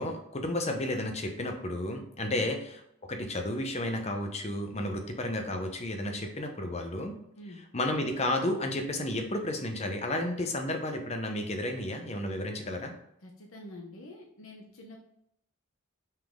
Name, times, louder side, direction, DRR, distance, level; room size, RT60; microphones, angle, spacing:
voice 1, 0.0-2.6 3.0-7.2 7.7-12.9, left 1 dB, 30° left, 4 dB, 0.9 m, -32 dB
voice 2, 13.2-15.0, left 1 dB, 70° left, 1 dB, 0.9 m, -47 dB
5.7 x 5.2 x 3.7 m, 0.76 s
head